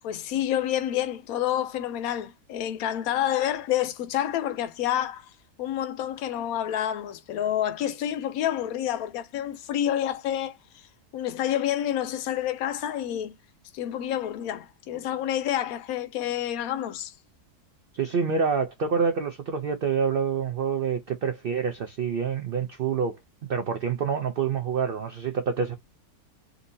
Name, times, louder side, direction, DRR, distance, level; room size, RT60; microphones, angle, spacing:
voice 1, 0.0-5.3 5.6-10.8 11.1-13.3 13.7-17.1, left 11 dB, 75° left, 1.0 m, -28 dB
voice 2, 17.9-23.2 23.5-25.7, right 6 dB, 90° right, 0.4 m, -27 dB
3.8 x 2.7 x 2.6 m
omnidirectional pair, 1.6 m